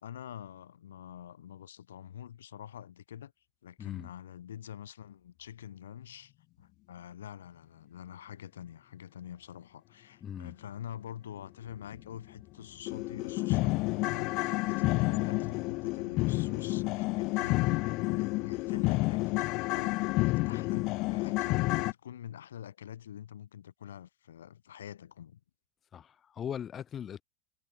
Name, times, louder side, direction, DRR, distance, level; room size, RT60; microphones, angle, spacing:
voice 1, 0.0-3.3 3.6-6.3 6.6-25.4, left 10 dB, 90° left, 1.4 m, -46 dB
voice 2, 3.8-4.1 10.2-10.5 25.9-27.2, left 9 dB, 30° left, 1.3 m, -39 dB
sound 1, 11.9-12.0 12.4-12.5 12.9-21.9, left 23 dB, 55° left, 0.3 m, -30 dB
hypercardioid pair, 105°, 0 cm